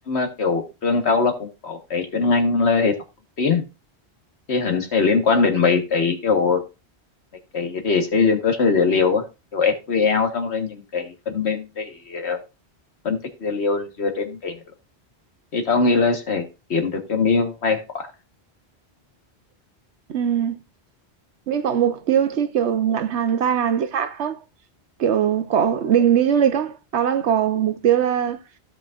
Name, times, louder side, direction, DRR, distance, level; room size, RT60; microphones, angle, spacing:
voice 1, 0.1-2.9 3.4-3.6 4.5-6.6 7.5-9.2 9.5-12.4 13.1-14.6 15.5-16.4 16.7-18.1, left 4 dB, 75° left, 1.7 m, -21 dB
voice 2, 20.1-20.5 21.5-24.4 25.0-28.4, right 9 dB, 90° right, 1.1 m, -21 dB
15.5 x 5.3 x 2.5 m
omnidirectional pair, 1.1 m